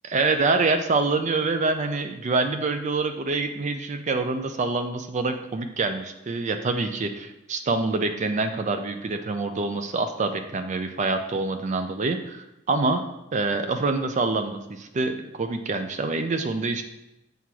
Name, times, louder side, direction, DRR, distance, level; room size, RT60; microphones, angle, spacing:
voice 1, 0.0-13.0 13.3-16.8, right 3 dB, 35° right, 7 dB, 0.4 m, -26 dB
7.4 x 3.5 x 6.1 m, 0.92 s
head